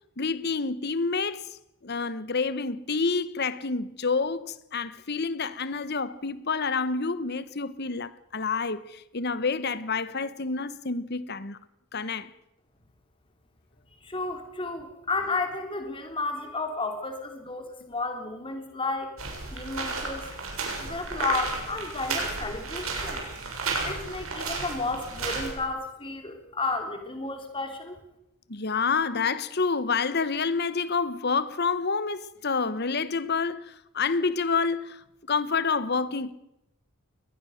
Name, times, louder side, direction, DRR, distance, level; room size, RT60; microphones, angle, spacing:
voice 1, 0.2-11.6 11.9-12.3 28.5-35.0 35.3-36.3, left 4 dB, 50° left, 1.1 m, -28 dB
voice 2, 14.0-19.1 19.5-20.3 20.8-23.3 23.8-28.0, left 3 dB, 25° left, 3.5 m, -32 dB
sound 1, 19.2-25.5, right 3 dB, 75° right, 6.9 m, -33 dB
23.0 x 19.5 x 6.6 m
head